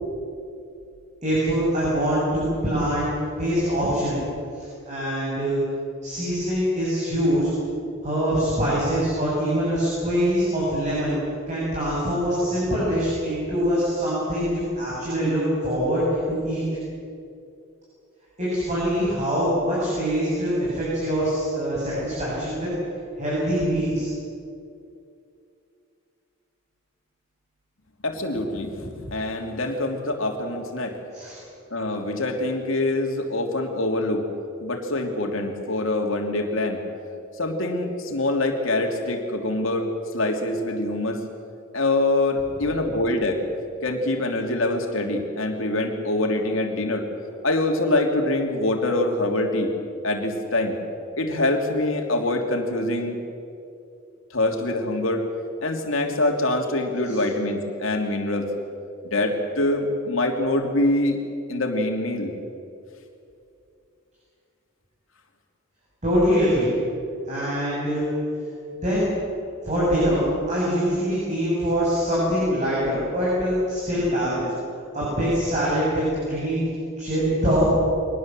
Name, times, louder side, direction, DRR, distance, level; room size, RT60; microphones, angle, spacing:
voice 1, 1.2-3.1 3.3-4.2 4.5-5.6 6.0-7.5 8.0-11.2 11.5-16.7 18.4-22.7 23.2-24.1 31.1-31.4 57.1-57.2 66.0-66.7 67.3-68.1 68.7-69.1 69.6-74.4 74.9-76.7 77.0-77.7, equal, 35° right, -7 dB, 7.8 m, -24 dB
voice 2, 28.0-31.0 31.7-34.3 34.6-36.8 37.4-41.2 41.7-43.4 43.8-47.1 47.4-49.7 50.0-50.8 51.2-53.2 54.3-55.3 55.6-58.5 59.0-61.2 61.5-62.3, left 2 dB, 70° left, 3 dB, 3.1 m, -24 dB
24.0 x 19.5 x 7.8 m, 2.6 s
head